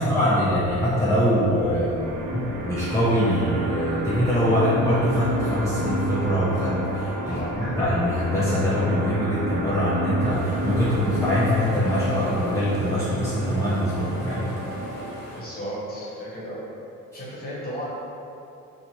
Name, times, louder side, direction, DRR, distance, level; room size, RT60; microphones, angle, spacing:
voice 1, 0.0-2.1 2.3-14.5, equal, 10° left, -10 dB, 0.4 m, -23 dB
sound 1, 2.0-15.3, equal, 90° right, 0.5 m, -31 dB
voice 2, 7.2-7.6 15.3-16.6 17.1-17.9, equal, 30° left, -7 dB, 0.9 m, -34 dB
sound 2, 10.3-15.4, left 1 dB, 50° left, 0.7 m, -43 dB
2.7 x 2.2 x 2.9 m, 2.7 s
cardioid pair, 90°, 30 cm